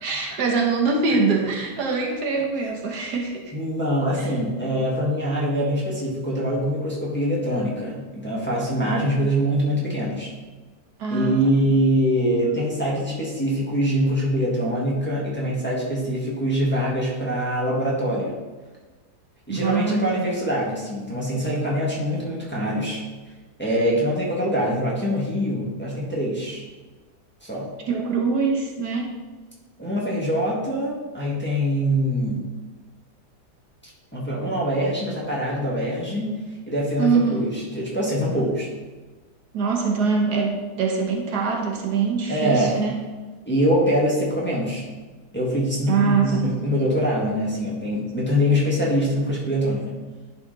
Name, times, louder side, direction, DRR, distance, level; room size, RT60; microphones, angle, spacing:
voice 1, 0.0-3.5 4.2-4.3 8.9-9.3 11.0-11.5 19.5-20.3 27.9-29.1 37.0-37.5 39.5-42.9 45.9-46.5, right 5 dB, 75° right, 0 dB, 1.6 m, -23 dB
voice 2, 3.5-10.3 11.1-18.4 19.5-23.0 23.6-26.6 27.4-27.7 29.8-32.4 33.8-36.3 36.7-38.7 42.3-42.9 43.5-44.8 45.3-50.0, equal, 5° left, -6 dB, 1.6 m, -24 dB
11.0 x 4.3 x 3.9 m, 1.3 s
omnidirectional pair, 1.8 m